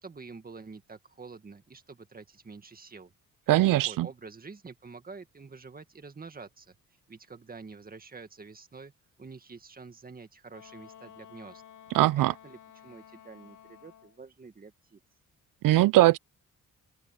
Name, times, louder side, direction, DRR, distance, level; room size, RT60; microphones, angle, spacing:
voice 1, 0.0-3.1 3.9-6.7 7.1-8.9 9.2-11.6 12.2-15.0, right 4 dB, 25° right, 1.9 m, -47 dB
voice 2, 3.5-4.1 11.9-12.3 15.6-16.2, right 16 dB, 80° right, 0.5 m, -21 dB
Wind instrument woodwind instrument, 10.5-14.2, left 9 dB, 70° left, 4.3 m, -52 dB
open air
cardioid pair, 115°, 33 cm